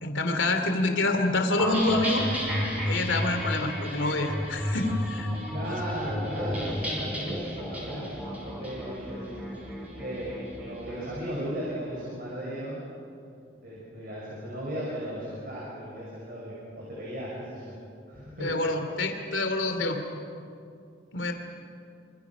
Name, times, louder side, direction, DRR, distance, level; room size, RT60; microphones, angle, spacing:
voice 1, 0.0-2.3 2.9-5.3 5.7-5.8 18.4-20.0 21.1-21.3, left 2 dB, 75° left, 5 dB, 2.8 m, -27 dB
sound 1, 1.6-11.0, equal, 10° right, 6.2 m, -32 dB
voice 2, 5.5-9.4 9.6-10.4 10.7-12.8 13.6-17.8 18.1-18.6, equal, 45° right, -5 dB, 6.2 m, -36 dB
27.0 x 27.0 x 6.1 m, 2.5 s
head